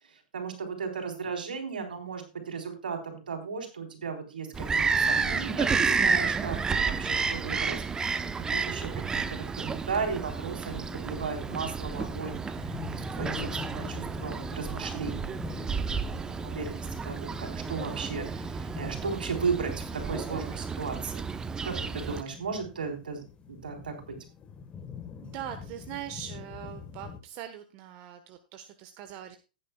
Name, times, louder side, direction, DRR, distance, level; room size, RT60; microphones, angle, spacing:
voice 1, 0.1-7.8 8.1-21.3 21.6-23.2 23.5-24.0, right 5 dB, 80° right, 4 dB, 3.9 m, -36 dB
Bird vocalization bird call bird song, 4.5-22.2, right 5 dB, 15° right, 0.8 m, -31 dB
sound 1, 10.7-27.2, left 7 dB, 20° left, 1.4 m, -45 dB
voice 2, 25.2-29.4, right 10 dB, 45° right, 8 dB, 1.2 m, -41 dB
16.0 x 9.9 x 2.3 m, 0.31 s
hypercardioid pair, 110°, 5 cm